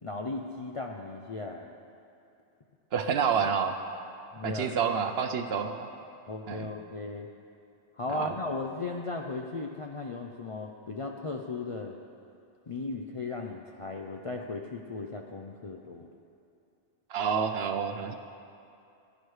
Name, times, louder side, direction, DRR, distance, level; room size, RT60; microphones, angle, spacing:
voice 1, 0.0-1.7 4.3-4.8 6.3-7.3 8.0-12.0 12.7-16.1, left 3 dB, 50° left, 1 dB, 0.4 m, -36 dB
voice 2, 2.9-3.7 4.4-5.9 6.5-6.7 8.1-8.4 17.1-18.2, right 6 dB, 65° right, 6 dB, 0.8 m, -28 dB
14.5 x 11.0 x 3.2 m, 2.6 s
omnidirectional pair, 1.2 m